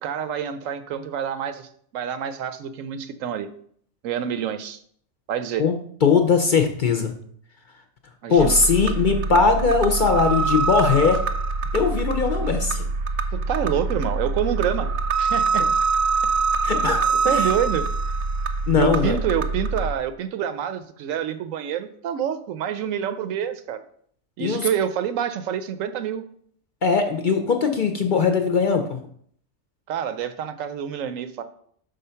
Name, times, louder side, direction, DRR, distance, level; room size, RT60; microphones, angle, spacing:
voice 1, 0.0-3.5 4.0-4.8 5.3-5.6 8.2-8.5 13.3-14.9 15.2-15.7 16.8-16.9 17.2-17.8 18.8-23.8 24.4-26.2 29.9-31.4, right 9 dB, 85° right, 10 dB, 1.0 m, -27 dB
voice 2, 5.6-7.1 8.3-11.2 11.7-12.8 16.6-17.5 18.7-19.2 24.4-24.7 26.8-29.0, left 5 dB, 55° left, 5 dB, 0.6 m, -20 dB
sound 1, 8.4-19.9, right 4 dB, 65° right, 0.8 m, -24 dB
5.6 x 3.9 x 5.6 m, 0.62 s
omnidirectional pair, 1.3 m